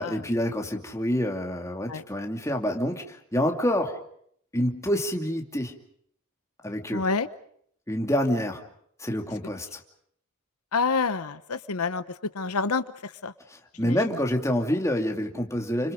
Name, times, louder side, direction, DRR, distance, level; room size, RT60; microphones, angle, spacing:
voice 1, 0.0-4.0 4.5-5.8 6.6-7.0 7.9-8.6 9.0-9.8 13.5-15.9, equal, 15° left, 2 dB, 2.6 m, -27 dB
voice 2, 6.9-7.3 10.7-12.0 12.3-12.8 13.2-13.3 13.8-14.0, left 4 dB, 85° left, 12 dB, 1.0 m, -27 dB
30.0 x 26.0 x 5.1 m, 0.66 s
head